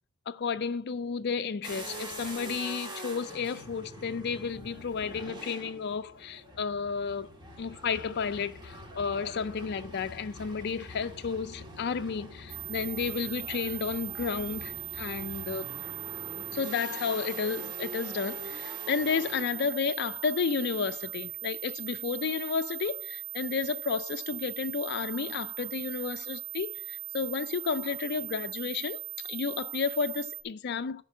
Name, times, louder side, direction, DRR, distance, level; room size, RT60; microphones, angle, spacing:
voice 1, 0.3-7.3 7.6-15.7 16.5-31.0, left 5 dB, 50° left, 0.4 m, -32 dB
sound 1, 1.6-19.4, equal, 20° right, 1.8 m, -44 dB
sound 2, 12.5-30.4, right 14 dB, 50° right, 1.6 m, -40 dB
10.5 x 4.5 x 7.1 m
head